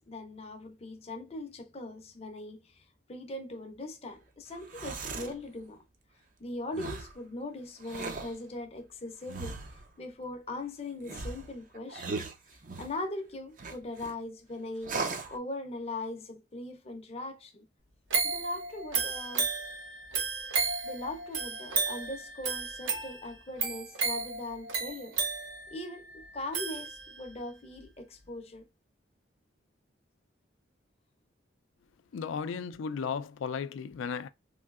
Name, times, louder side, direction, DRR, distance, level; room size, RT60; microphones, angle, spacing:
voice 1, 0.1-5.8 6.4-9.6 10.0-12.2 12.8-15.0 15.3-17.7 18.2-19.5 20.6-25.2 25.7-28.6, left 2 dB, 30° left, 0.5 m, -40 dB
sound 1, 4.5-5.4 6.7-7.2 7.8-8.4 9.3-9.9 11.0-13.0 13.6-14.1 14.8-15.4, right 3 dB, 40° right, 0.5 m, -38 dB
sound 2, 18.1-27.4 27.8-27.9, right 5 dB, 80° right, 0.8 m, -33 dB
voice 2, 32.1-34.3, left 6 dB, 80° left, 0.3 m, -35 dB
3.1 x 2.7 x 2.3 m
head